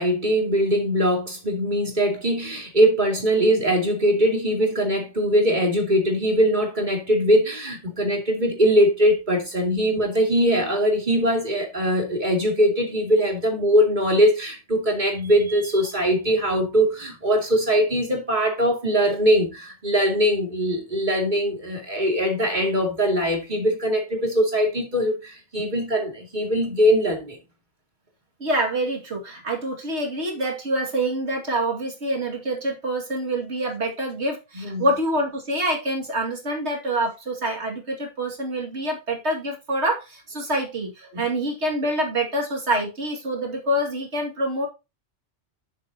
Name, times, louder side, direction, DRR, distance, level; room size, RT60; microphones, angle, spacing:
voice 1, 0.0-27.4 34.6-34.9 41.1-41.2, equal, 40° right, 2.7 m, -21 dB
voice 2, 28.4-44.7, right 1 dB, 65° right, 2.6 m, -26 dB
10.0 x 7.8 x 2.9 m
omnidirectional pair, 1.2 m